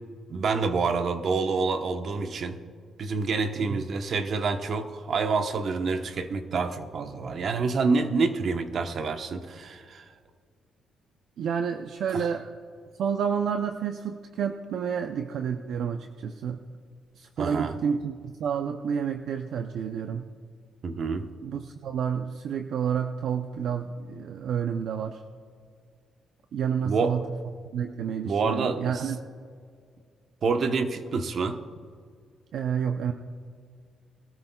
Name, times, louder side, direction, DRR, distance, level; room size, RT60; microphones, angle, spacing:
voice 1, 0.3-2.6 3.0-10.1 12.1-12.3 17.4-17.8 20.8-21.3 26.8-27.1 28.2-29.1 30.4-31.6, right 4 dB, 55° right, 7 dB, 1.0 m, -27 dB
voice 2, 11.4-12.5 13.0-16.6 17.2-20.3 21.4-25.2 26.5-27.3 27.7-29.2 32.5-33.1, right 7 dB, 70° right, 6 dB, 0.6 m, -30 dB
21.0 x 13.0 x 2.3 m, 2.1 s
cardioid pair, 90°, 0 cm